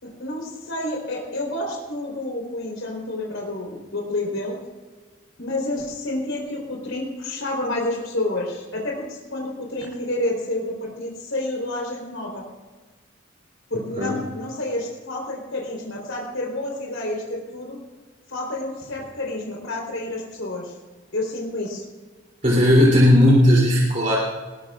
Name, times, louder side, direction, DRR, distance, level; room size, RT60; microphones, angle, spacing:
voice 1, 0.0-4.6 5.4-12.4 13.7-17.8 18.3-20.7 21.1-21.8, left 1 dB, 80° left, -1 dB, 3.9 m, -29 dB
voice 2, 22.4-24.2, left 1 dB, 35° right, -5 dB, 3.1 m, -15 dB
20.5 x 19.0 x 2.5 m, 1.3 s
head